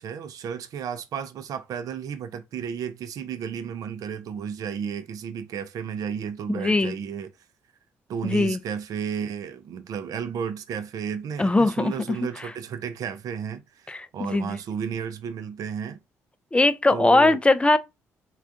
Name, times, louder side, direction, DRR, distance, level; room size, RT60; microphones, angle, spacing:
voice 1, 0.0-7.3 8.1-16.0 16.9-17.4, right 7 dB, 60° right, 0.5 m, -33 dB
voice 2, 6.6-6.9 8.2-8.6 11.4-12.2 13.9-14.6 16.5-17.8, left 2 dB, 15° left, 0.4 m, -20 dB
3.3 x 2.4 x 2.6 m
hypercardioid pair, 50°, 7 cm